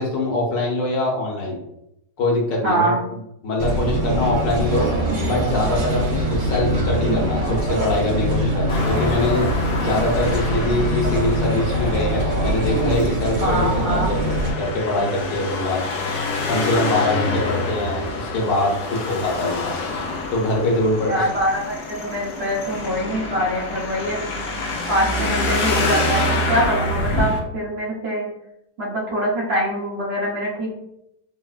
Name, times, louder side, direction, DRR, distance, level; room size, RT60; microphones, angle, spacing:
voice 1, 0.0-1.6 2.2-4.9 5.2-9.5 9.8-15.8 16.5-19.7 20.3-21.2, left 2 dB, 90° left, -1 dB, 1.5 m, -23 dB
voice 2, 2.6-3.0 13.4-14.1 21.1-24.6 24.9-28.2 28.8-30.7, equal, 45° right, -5 dB, 0.9 m, -24 dB
sound 1, 3.6-14.5, right 1 dB, 75° right, 1.6 m, -23 dB
Traffic noise roadway noise, 8.7-27.4, left 2 dB, 70° left, 1.1 m, -27 dB
4.1 x 2.1 x 2.3 m, 0.82 s
omnidirectional pair, 1.9 m